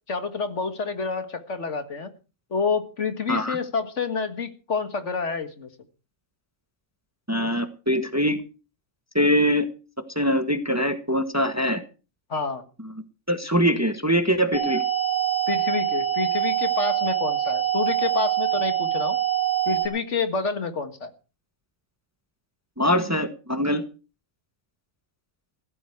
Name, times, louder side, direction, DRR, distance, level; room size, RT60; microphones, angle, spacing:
voice 1, 0.1-2.1 2.5-5.7 12.3-12.6 15.5-19.2 19.7-21.1, left 5 dB, 65° left, 9 dB, 2.1 m, -28 dB
voice 2, 7.3-8.4 9.1-9.7 10.1-11.8 13.3-14.8 22.8-23.8, equal, 15° right, 9 dB, 1.3 m, -23 dB
sound 1, 14.5-19.9, right 11 dB, 85° right, 2.8 m, -24 dB
15.5 x 13.5 x 4.7 m, 0.34 s
omnidirectional pair, 1.3 m